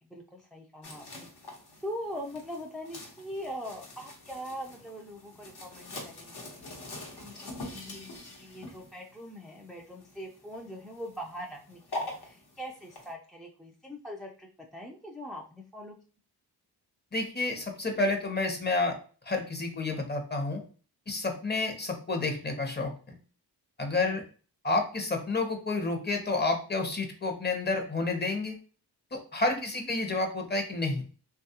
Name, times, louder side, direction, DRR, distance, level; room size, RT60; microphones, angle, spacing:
voice 1, 0.0-1.3 1.8-8.1 8.4-16.0 24.1-24.2 29.5-29.9, equal, ahead, 0 dB, 0.3 m, -42 dB
sound 1, 0.8-13.1, left 1 dB, 75° left, 1.0 m, -44 dB
voice 2, 17.1-19.0 19.2-20.6 21.1-23.1 23.8-24.2 24.6-28.6 29.1-31.0, left 3 dB, 25° left, 4 dB, 0.7 m, -30 dB
3.1 x 2.3 x 2.7 m, 0.38 s
cardioid pair, 90°, 40 cm